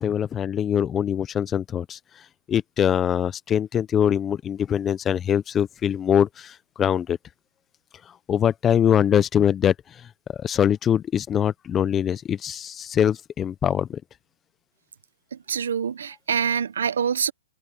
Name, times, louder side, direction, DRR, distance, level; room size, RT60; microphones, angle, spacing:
voice 1, 0.0-2.0 2.5-7.2 8.3-9.7 10.4-14.0, left 9 dB, 15° left, 0.6 m, -23 dB
voice 2, 15.3-17.3, right 7 dB, 80° right, 1.0 m, -25 dB
hypercardioid pair, 150°, 0 cm